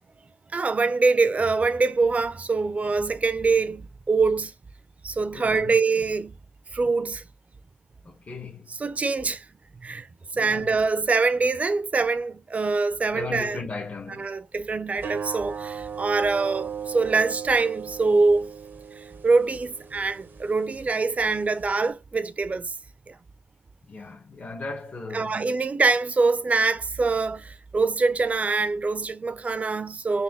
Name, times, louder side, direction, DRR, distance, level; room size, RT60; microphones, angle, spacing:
voice 1, 0.5-4.5 5.0-6.3 6.7-7.2 8.7-9.5 9.8-10.1 10.3-13.6 14.2-18.5 19.2-22.7 23.1-23.2 25.1-30.2, right 4 dB, 45° right, 0.5 m, -24 dB
voice 2, 5.3-5.7 8.0-8.7 10.3-10.8 13.1-14.3 23.9-25.4, left 4 dB, 55° left, 1.1 m, -37 dB
sound 1, 15.0-21.9, right 7 dB, 80° right, 0.8 m, -37 dB
4.1 x 2.3 x 4.0 m
cardioid pair, 75°, 3 cm